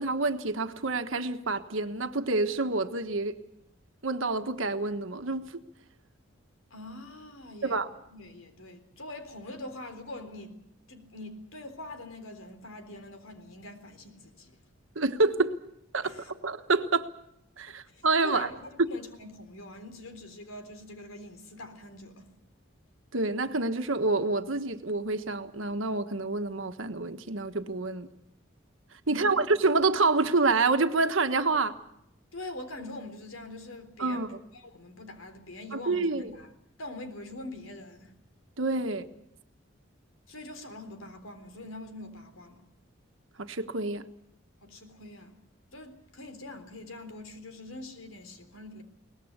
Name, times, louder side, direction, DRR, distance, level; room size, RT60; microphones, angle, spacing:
voice 1, 0.0-3.3 4.0-5.6 7.6-7.9 14.9-15.6 15.9-16.1 16.4-17.1 17.6-18.5 23.1-28.1 29.1-31.7 34.0-34.3 35.7-36.3 38.6-39.1 43.4-44.1, right 3 dB, 75° right, 1.4 m, -27 dB
voice 2, 6.7-7.8 8.1-10.6 10.9-14.6 16.0-16.3 17.7-22.3 29.1-29.5 32.3-36.5 36.8-38.1 40.3-42.6 44.6-45.4 45.7-48.8, left 2 dB, 90° left, 3.8 m, -43 dB
22.5 x 19.0 x 8.2 m
head